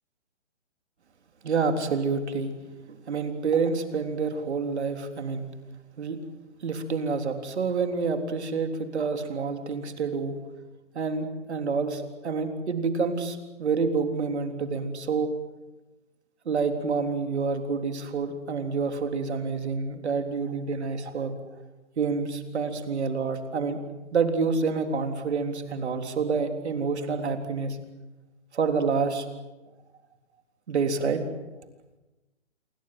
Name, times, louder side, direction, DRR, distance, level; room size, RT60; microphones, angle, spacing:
voice 1, 1.4-2.5 2.9-5.5 6.0-6.2 6.6-10.4 10.9-15.3 16.5-21.3 22.0-23.8 24.1-27.8 28.5-29.3 30.7-31.2, right 5 dB, 65° right, 6 dB, 3.7 m, -28 dB
27.5 x 24.0 x 7.9 m, 1.1 s
hypercardioid pair, 150°, 36 cm